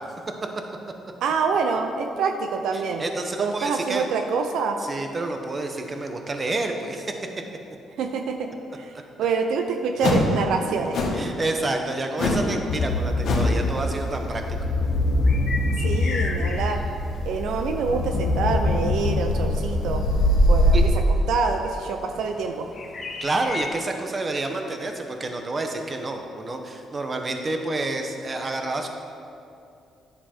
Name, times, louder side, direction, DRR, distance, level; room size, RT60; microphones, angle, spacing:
voice 1, 1.2-3.0 3.4-4.8 8.0-8.5 8.8-11.0 15.8-16.8 17.3-20.0 20.5-20.9 21.3-22.7, right 5 dB, 80° right, 5 dB, 0.6 m, -26 dB
voice 2, 2.7-4.1 4.8-7.2 11.1-14.6 20.7-20.8 23.2-28.9, right 2 dB, 30° right, 4 dB, 1.0 m, -29 dB
sound 1, 10.0-10.3 10.9-11.3 12.2-12.5 12.8-12.9 13.2-13.6, left 2 dB, 65° left, 1.6 m, -23 dB
sound 2, 12.7-20.9, left 1 dB, 85° left, 1.2 m, -23 dB
sound 3, 14.8-23.8, left 3 dB, 50° left, 1.6 m, -38 dB
10.5 x 7.0 x 4.5 m, 2.5 s
cardioid pair, 90°, 0 cm